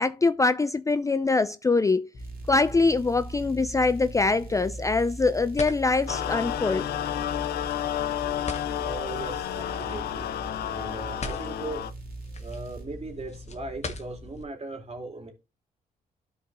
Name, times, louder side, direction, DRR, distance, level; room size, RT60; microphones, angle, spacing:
voice 1, 0.0-2.1 2.5-6.9, left 3 dB, 20° left, 0.4 m, -23 dB
sound 1, 2.1-14.4, left 2 dB, 45° left, 1.4 m, -42 dB
sound 2, 2.2-12.8, right 3 dB, 65° right, 2.4 m, -42 dB
sound 3, 6.1-11.9, left 11 dB, 75° left, 0.5 m, -31 dB
voice 2, 8.8-10.3 10.7-11.8 12.4-15.3, right 2 dB, 40° right, 2.7 m, -38 dB
12.5 x 4.9 x 2.6 m
supercardioid pair, 55°, 16 cm